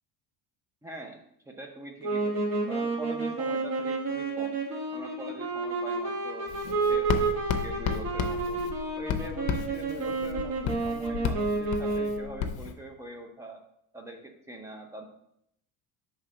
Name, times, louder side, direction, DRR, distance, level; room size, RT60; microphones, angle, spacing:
voice 1, 0.8-4.6 4.9-6.5 6.8-8.6 9.0-13.6 13.9-15.1, right 1 dB, 10° right, 3 dB, 0.5 m, -43 dB
sound 1, 2.0-12.4, right 3 dB, 40° right, 1.0 m, -30 dB
Writing, 6.5-12.7, left 8 dB, 60° left, 0.6 m, -33 dB
5.6 x 3.5 x 5.0 m, 0.75 s
cardioid pair, 175°, 40 cm